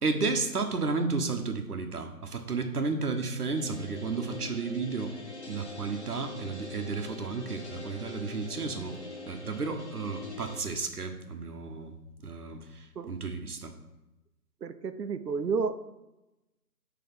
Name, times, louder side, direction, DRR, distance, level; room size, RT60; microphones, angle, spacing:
voice 1, 0.0-5.1 5.5-9.0 9.2-11.9 12.2-13.7, right 4 dB, 65° right, 6 dB, 1.1 m, -32 dB
sound 1, 3.5-10.6, left 3 dB, 45° left, 0.9 m, -44 dB
voice 2, 14.6-15.8, right 5 dB, 80° right, 10 dB, 0.8 m, -31 dB
9.6 x 3.3 x 4.3 m, 0.99 s
figure-of-eight pair, 175°, 49 cm